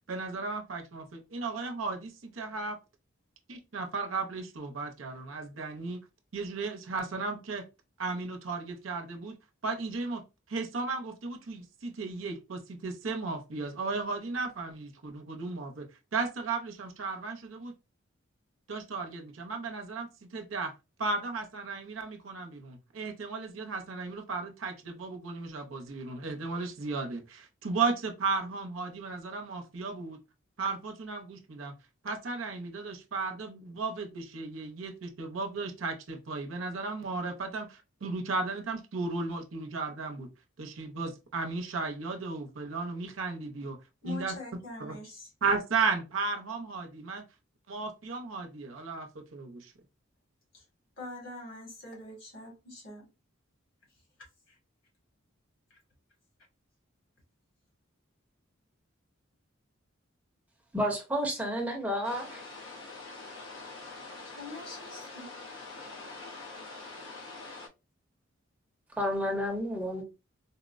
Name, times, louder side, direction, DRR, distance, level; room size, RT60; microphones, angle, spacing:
voice 1, 0.1-2.8 3.5-6.0 6.3-7.6 8.0-9.3 9.6-10.2 10.5-15.9 16.1-17.7 18.7-20.7 21.0-30.2 30.6-31.7 32.0-40.3 40.6-43.8 44.0-45.0 45.4-47.2 47.7-49.7, right 4 dB, 80° right, 0.7 m, -35 dB
voice 2, 44.0-45.3 50.5-50.6 51.0-53.1 54.5-54.6 64.2-65.3, left 2 dB, 70° left, 1.8 m, -44 dB
voice 3, 60.7-62.4 69.0-70.0, equal, 10° right, 0.7 m, -31 dB
sound 1, 62.0-67.7, left 3 dB, 85° left, 0.9 m, -44 dB
4.0 x 2.0 x 2.4 m
head